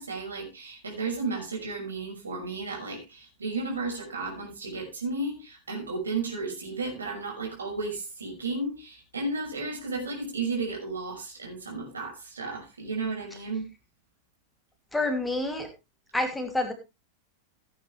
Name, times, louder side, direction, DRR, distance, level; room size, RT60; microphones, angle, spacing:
voice 1, 0.0-13.6, right 3 dB, 75° right, 0 dB, 5.9 m, -33 dB
voice 2, 14.9-15.7 16.1-16.7, left 2 dB, 5° left, 4 dB, 2.7 m, -28 dB
16.0 x 9.2 x 3.3 m, 0.26 s
figure-of-eight pair, 90°, 0 cm